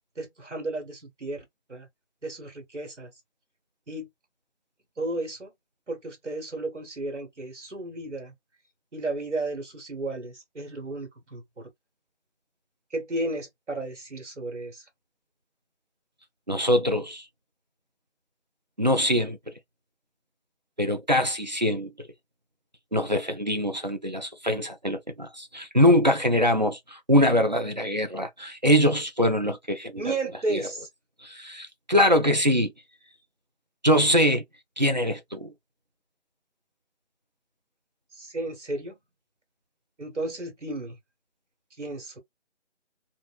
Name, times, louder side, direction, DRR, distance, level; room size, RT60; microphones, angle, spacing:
voice 1, 0.1-1.4 1.7-1.9 2.2-3.1 3.9-4.1 5.0-5.5 5.9-8.3 8.9-11.7 12.9-14.8 29.9-30.9 38.1-39.0 40.0-41.0 41.8-42.2, right 2 dB, 70° right, 1.5 m, -33 dB
voice 2, 16.5-17.3 18.8-19.5 20.8-22.1 22.9-30.1 30.5-30.7 31.2-32.7 33.8-34.4 34.8-35.5, equal, 40° right, 0.5 m, -23 dB
2.8 x 2.2 x 2.3 m
figure-of-eight pair, 160°, 36 cm